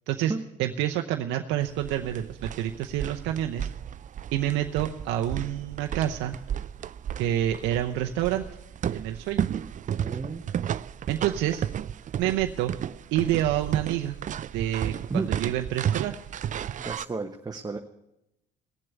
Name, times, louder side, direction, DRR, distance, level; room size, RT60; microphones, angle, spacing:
voice 1, 0.6-3.7 4.3-6.4 7.2-8.4 8.9-9.5 11.1-11.7 12.2-12.7 13.1-14.2 14.5-16.2, right 12 dB, 70° right, 5 dB, 0.7 m, -28 dB
sound 1, 1.6-17.1, right 9 dB, 40° right, 0.5 m, -33 dB
voice 2, 9.8-10.4 15.1-15.3 16.8-17.8, right 4 dB, 20° right, 4 dB, 1.1 m, -32 dB
17.5 x 7.6 x 9.5 m, 0.89 s
hypercardioid pair, 65°, 20 cm